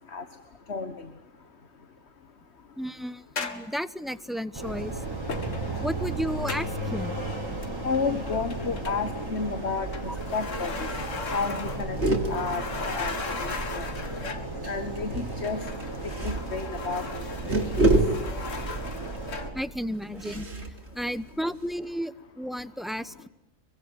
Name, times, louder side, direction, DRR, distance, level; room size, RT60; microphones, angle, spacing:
voice 1, 2.8-5.0 5.8-7.2 10.1-10.2 19.5-20.5 20.9-23.3, equal, ahead, 14 dB, 0.8 m, -33 dB
sound 1, 3.4-3.8 5.3-5.8 6.5-6.8 7.6-8.0 8.3-9.4 9.9-12.0 12.2-14.5 15.4-19.6, left 4 dB, 85° left, 2.3 m, -37 dB
sound 2, 4.5-19.5, right 2 dB, 15° right, 6.6 m, -35 dB
voice 2, 7.8-10.9 11.3-12.0 12.3-13.9 14.7-15.6 16.2-17.0 17.5-17.6, left 4 dB, 60° left, 10 dB, 1.8 m, -31 dB
sound 3, 9.8-10.3 10.6-10.7 10.9-11.2 11.5-13.8 14.9-21.9, right 2 dB, 60° right, 3.4 m, -30 dB
25.5 x 24.0 x 9.7 m, 0.82 s
omnidirectional pair, 1.3 m